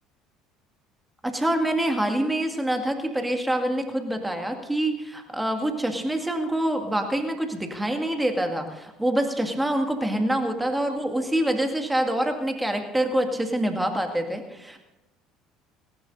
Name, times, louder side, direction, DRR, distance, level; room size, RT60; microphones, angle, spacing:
voice 1, 1.2-14.8, right 1 dB, 10° right, 4 dB, 2.1 m, -26 dB
19.5 x 18.0 x 2.7 m, 1.0 s
figure-of-eight pair, 60°, 0 cm